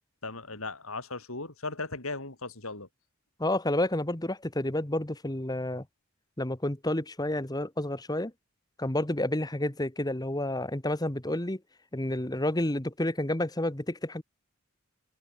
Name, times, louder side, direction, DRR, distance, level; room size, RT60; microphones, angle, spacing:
voice 1, 0.2-2.9, left 3 dB, 75° left, 5.1 m, -37 dB
voice 2, 3.4-5.8 6.4-8.3 8.8-11.6 11.9-14.2, left 1 dB, 20° left, 1.4 m, -30 dB
head